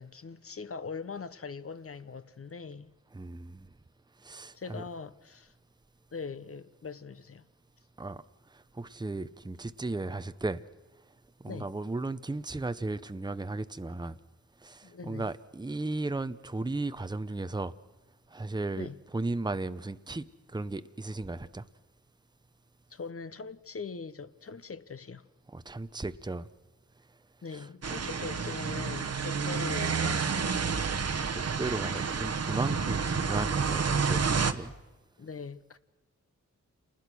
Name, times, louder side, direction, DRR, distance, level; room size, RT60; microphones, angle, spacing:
voice 1, 0.0-2.9 4.5-5.5 6.1-7.5 11.5-11.7 14.8-15.3 18.8-19.0 22.9-25.3 27.4-30.7 35.2-35.8, left 5 dB, 50° left, 1.1 m, -41 dB
voice 2, 3.1-3.7 4.2-4.8 8.0-8.2 8.5-10.6 11.4-14.2 14.6-17.7 18.3-18.9 19.1-21.6 25.5-26.5 27.5-27.6 31.1-34.7, right 2 dB, 15° right, 0.8 m, -35 dB
sound 1, 27.8-34.5, right 5 dB, 55° right, 1.2 m, -29 dB
28.5 x 20.0 x 6.2 m
wide cardioid pair, 70°, 30 cm